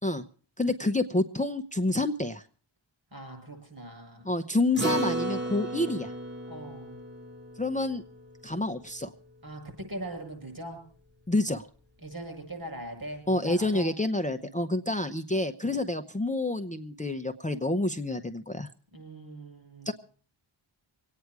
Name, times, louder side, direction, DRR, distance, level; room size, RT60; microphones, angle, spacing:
voice 1, 0.6-2.4 4.2-6.1 7.6-8.0 8.4-9.1 11.3-11.7 13.3-18.7 19.9-20.0, left 2 dB, 15° left, 7 dB, 0.8 m, -28 dB
voice 2, 3.1-4.3 6.5-7.0 9.4-10.8 12.0-14.0 14.3-14.8 18.9-19.9, right 1 dB, 45° right, 4 dB, 7.8 m, -41 dB
Acoustic guitar, 4.8-9.5, right 1 dB, 20° right, 1.9 m, -35 dB
24.5 x 9.4 x 4.8 m, 0.43 s
cardioid pair, 45°, 49 cm